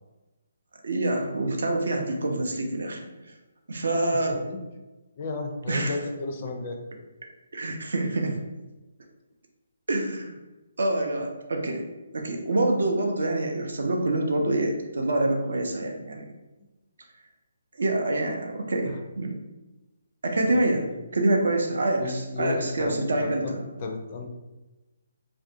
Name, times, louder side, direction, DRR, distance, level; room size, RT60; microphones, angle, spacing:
voice 1, 0.8-3.0 3.7-4.4 5.7-6.0 7.5-8.4 9.9-10.3 10.8-11.8 12.1-16.3 17.8-19.3 20.2-23.7, right 2 dB, 60° right, 2 dB, 0.4 m, -26 dB
voice 2, 4.3-4.6 5.2-6.8 20.5-20.6 22.0-24.3, left 3 dB, 35° left, 2 dB, 0.4 m, -33 dB
2.4 x 2.2 x 2.6 m, 1.1 s
figure-of-eight pair, 140°, 0 cm